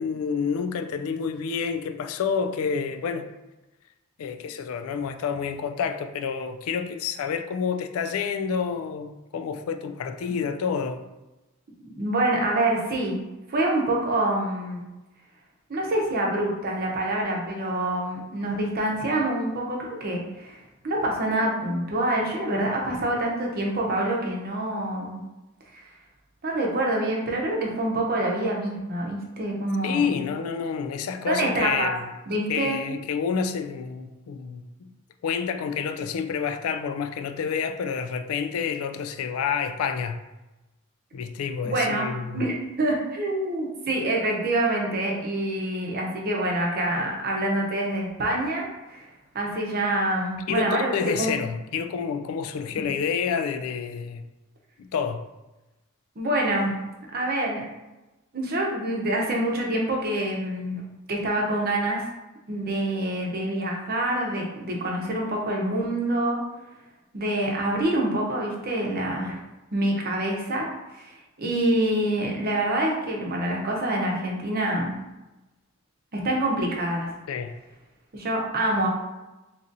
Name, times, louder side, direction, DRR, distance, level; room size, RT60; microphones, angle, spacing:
voice 1, 0.0-3.3 4.2-11.0 29.8-32.1 32.5-34.9 35.2-40.2 41.1-42.4 50.5-54.2 54.8-55.2 77.3-77.5, left 6 dB, 80° left, 8 dB, 0.3 m, -29 dB
voice 2, 11.9-13.2 13.5-14.8 15.7-20.6 20.8-25.2 25.7-25.9 26.4-30.3 31.3-31.9 32.3-32.8 41.6-49.1 49.3-51.3 52.8-52.9 56.2-56.8 57.1-57.7 58.3-60.8 61.1-62.0 62.5-66.4 67.1-69.3 69.7-70.7 70.9-74.9 76.1-77.1 78.1-78.9, right 1 dB, 45° right, -1 dB, 0.7 m, -26 dB
3.9 x 2.9 x 2.6 m, 1.0 s
head